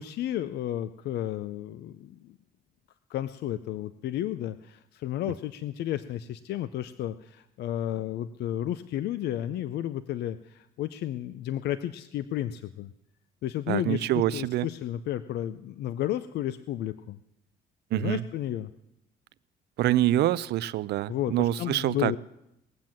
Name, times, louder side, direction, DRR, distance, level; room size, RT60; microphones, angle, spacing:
voice 1, 0.0-2.4 3.1-12.9 13.4-17.2 17.9-18.7 21.1-22.2, left 12 dB, 75° left, 0.5 m, -32 dB
voice 2, 13.7-14.7 17.9-18.2 19.8-22.2, right 14 dB, 75° right, 0.5 m, -26 dB
20.0 x 7.5 x 7.5 m
cardioid pair, 100°, 17 cm